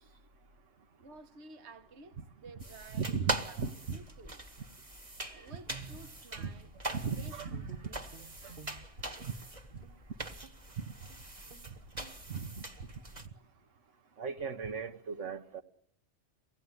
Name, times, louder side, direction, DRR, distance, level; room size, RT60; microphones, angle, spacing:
voice 1, 1.0-3.1 3.4-4.4 5.3-6.7 6.9-8.0, right 3 dB, 65° right, 1.4 m, -53 dB
sound 1, 2.6-13.3, right 2 dB, 30° right, 1.5 m, -42 dB
voice 2, 2.9-4.0 6.4-6.5 6.9-7.9 8.4-8.6 9.2-9.3 10.8-10.9 12.3-12.6 14.2-15.6, right 5 dB, 85° right, 1.5 m, -37 dB
Guitar, 5.7-7.4 7.7-9.4 9.8-10.0 10.4-10.7 11.1-11.2 11.5-11.7 12.0-12.2, right 6 dB, 50° right, 1.5 m, -53 dB
23.5 x 17.0 x 9.7 m
omnidirectional pair, 1.2 m